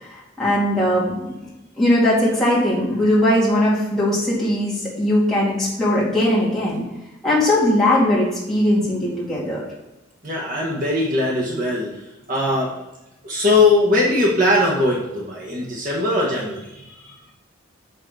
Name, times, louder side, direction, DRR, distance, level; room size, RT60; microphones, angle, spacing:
voice 1, 0.4-1.3 1.8-6.8 7.2-9.6, left 1 dB, ahead, -8 dB, 2.5 m, -19 dB
voice 2, 10.2-11.9 12.3-12.7 13.2-16.6, left 2 dB, 40° right, -4 dB, 1.5 m, -20 dB
6.5 x 6.4 x 4.9 m, 0.96 s
head